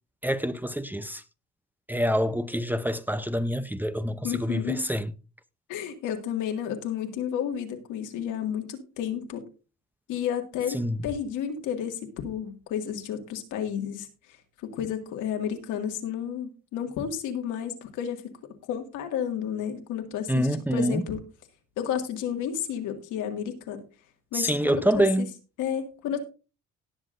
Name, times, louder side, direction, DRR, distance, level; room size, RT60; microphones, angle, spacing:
voice 1, 0.2-1.2 1.9-5.1 10.7-11.0 20.3-21.0 24.3-25.3, equal, 5° right, 0.7 m, -26 dB
voice 2, 4.2-4.9 5.7-9.4 10.1-14.1 14.6-18.3 18.7-21.2 21.8-23.8 24.3-25.3 25.6-26.2, left 9 dB, 85° left, 2.2 m, -31 dB
18.0 x 7.3 x 2.6 m
cardioid pair, 100°, 30 cm